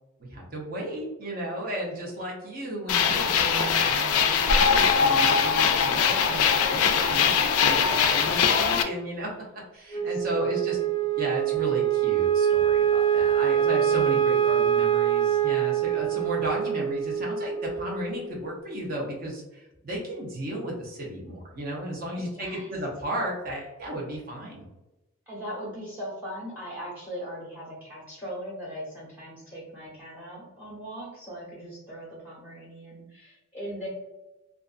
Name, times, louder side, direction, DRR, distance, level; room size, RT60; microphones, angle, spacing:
voice 1, 0.2-10.8 11.2-24.7, right 1 dB, 40° right, -2 dB, 0.7 m, -34 dB
sound 1, 2.9-8.8, left 6 dB, 80° left, 0.3 m, -22 dB
Wind instrument woodwind instrument, 9.9-18.4, right 9 dB, 25° left, 0.5 m, -24 dB
voice 2, 10.0-11.0 22.2-22.7 25.3-33.9, equal, 10° right, -7 dB, 1.0 m, -39 dB
2.4 x 2.3 x 2.4 m, 1.0 s
head